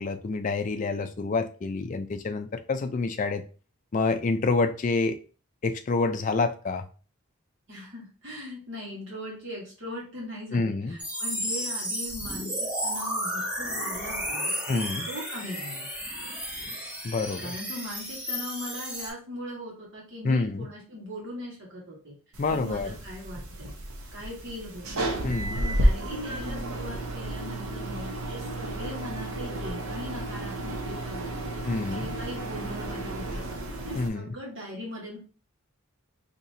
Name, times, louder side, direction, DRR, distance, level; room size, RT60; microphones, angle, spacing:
voice 1, 0.0-3.4 3.9-5.2 5.6-6.8 10.5-11.0 14.7-15.1 17.0-17.6 20.2-20.7 22.4-22.9 25.2-25.6 31.6-32.1 34.0-34.3, left 3 dB, 35° left, 8 dB, 0.3 m, -27 dB
voice 2, 7.7-14.5 15.1-15.9 17.4-22.1 22.5-23.7 24.1-25.1 25.5-31.5 31.9-35.2, left 1 dB, 55° right, -4 dB, 1.7 m, -40 dB
sound 1, 11.0-19.1, equal, 5° right, 0.8 m, -33 dB
sound 2, 22.3-34.1, right 1 dB, 75° right, 0.8 m, -32 dB
4.0 x 2.9 x 2.7 m, 0.36 s
head